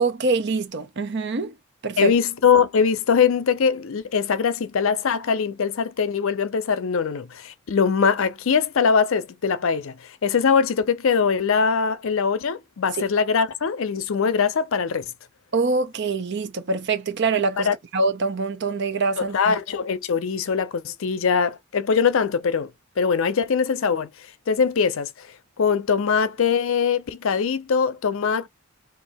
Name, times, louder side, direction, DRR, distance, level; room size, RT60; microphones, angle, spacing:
voice 1, 0.0-1.5 1.8-2.1 12.9-13.0 15.5-19.6, right 3 dB, 55° right, 0.7 m, -24 dB
voice 2, 2.0-15.1 17.6-17.7 19.2-22.7 23.0-24.1 24.5-25.3 25.6-28.5, left 6 dB, 70° left, 0.5 m, -22 dB
2.7 x 2.5 x 4.1 m
head